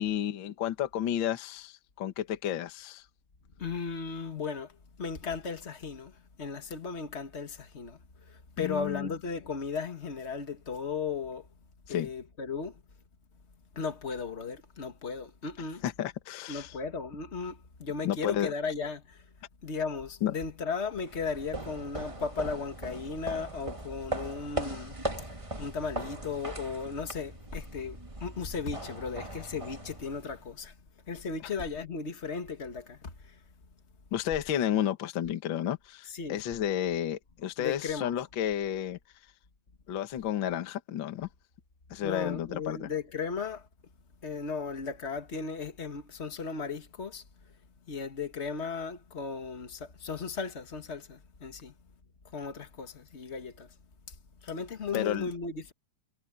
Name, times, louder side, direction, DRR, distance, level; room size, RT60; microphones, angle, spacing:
voice 1, 0.0-3.0 8.6-9.1 11.9-12.1 15.8-16.7 18.0-18.5 20.2-20.3 34.1-39.0 39.9-41.3 41.9-42.9 54.9-55.3, left 11 dB, 50° left, 1.5 m, -31 dB
voice 2, 3.6-11.5 11.9-12.8 13.7-15.8 16.5-19.2 19.6-25.0 25.3-30.7 31.1-33.4 36.1-36.4 37.6-38.1 42.0-43.7 44.2-47.2 47.9-51.7 52.3-53.7 54.1-54.2 54.4-55.7, left 5 dB, 90° left, 0.6 m, -36 dB
sound 1, 20.9-30.5, right 1 dB, 35° right, 0.4 m, -39 dB
omnidirectional pair, 4.1 m